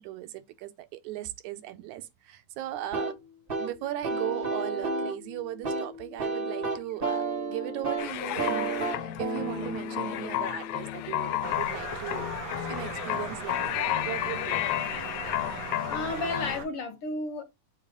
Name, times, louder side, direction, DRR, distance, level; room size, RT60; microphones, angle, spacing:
voice 1, 0.0-3.1 3.5-12.3 12.7-14.8 15.2-15.4, right 13 dB, 80° right, 2.1 m, -38 dB
sound 1, 2.9-11.5, right 3 dB, 40° right, 0.8 m, -33 dB
sound 2, 8.0-16.6, left 14 dB, 80° left, 2.0 m, -32 dB
sound 3, 11.4-16.7, right 6 dB, 60° right, 1.3 m, -39 dB
voice 2, 15.9-17.4, left 2 dB, 55° left, 1.9 m, -32 dB
7.2 x 4.0 x 3.9 m
omnidirectional pair, 3.4 m